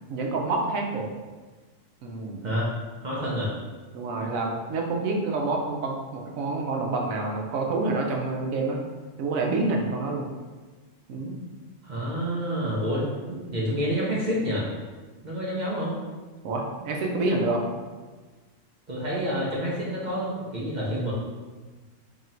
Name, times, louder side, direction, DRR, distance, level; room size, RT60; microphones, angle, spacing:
voice 1, 0.1-1.1 2.0-2.5 3.9-8.8 9.2-10.3 11.1-11.4 16.4-17.6, right 3 dB, 90° right, 0 dB, 1.1 m, -27 dB
voice 2, 3.0-3.5 11.8-14.6 15.2-16.0 18.9-21.1, equal, 45° right, -6 dB, 0.7 m, -28 dB
3.0 x 2.5 x 4.2 m, 1.3 s
omnidirectional pair, 1.4 m